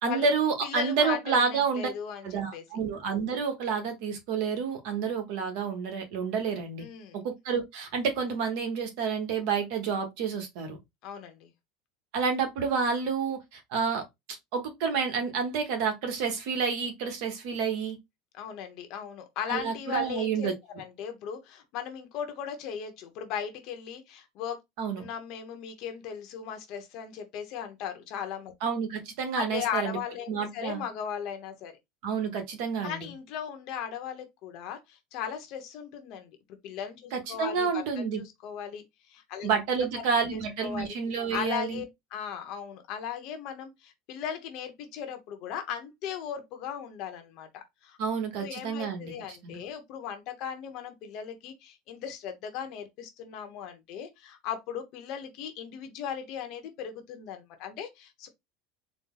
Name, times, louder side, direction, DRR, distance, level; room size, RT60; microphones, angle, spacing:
voice 1, 0.0-1.9 2.2-6.8 7.1-10.8 12.1-14.0 14.5-18.0 19.5-20.5 24.8-25.1 28.6-30.0 30.3-30.8 32.0-33.1 37.1-38.2 39.4-41.8 48.0-49.1 49.4-49.6, right 5 dB, 55° right, 1.3 m, -29 dB
voice 2, 0.6-2.6 6.8-7.2 11.0-11.5 18.3-24.6 25.0-28.5 29.3-31.7 32.8-36.3 36.6-39.5 40.3-41.0 41.3-41.9 42.1-48.0 48.3-58.3, left 8 dB, 45° left, 0.9 m, -37 dB
4.2 x 2.2 x 3.8 m
supercardioid pair, 170°, 0 cm